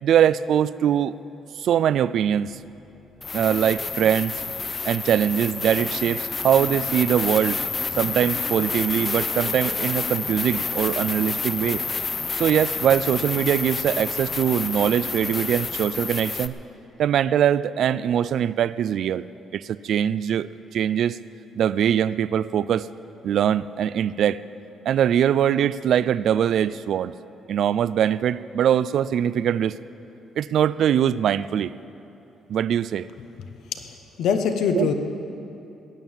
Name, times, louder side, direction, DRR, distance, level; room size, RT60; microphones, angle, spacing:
voice 1, 0.0-1.1 1.6-2.6 3.3-4.3 4.8-7.6 8.0-11.8 12.3-16.5 17.0-19.3 19.5-20.5 20.7-21.2 21.6-22.9 23.2-24.4 24.9-27.1 27.5-29.8 30.4-31.7 32.5-33.1 34.7-34.9, right 9 dB, 70° right, 16 dB, 0.4 m, -22 dB
sound 1, 2.5-2.6 3.2-16.5, left 4 dB, 30° left, 0.7 m, -29 dB
voice 2, 33.7-34.9, left 6 dB, 80° left, 7 dB, 1.0 m, -24 dB
20.0 x 9.2 x 7.2 m, 2.8 s
cardioid pair, 90°, 0 cm